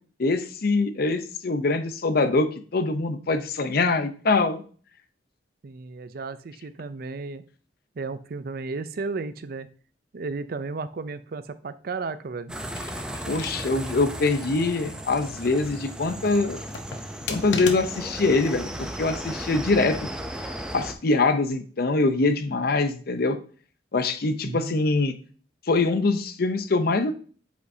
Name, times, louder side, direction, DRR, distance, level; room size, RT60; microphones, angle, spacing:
voice 1, 0.2-4.6 13.3-16.6 17.3-18.7 19.0-20.1 20.7-23.4 23.9-25.1 25.7-27.1, left 3 dB, 60° left, 9 dB, 0.6 m, -23 dB
voice 2, 5.6-7.4 8.0-9.7 10.1-12.6 24.4-24.8, right 4 dB, 55° right, 13 dB, 0.5 m, -34 dB
sound 1, 12.5-20.9, right 1 dB, 5° right, 0.6 m, -35 dB
sound 2, 12.8-14.0 14.4-14.5 16.4-18.2 19.1-19.6, left 5 dB, 90° left, 0.8 m, -36 dB
7.9 x 5.1 x 2.7 m, 0.42 s
head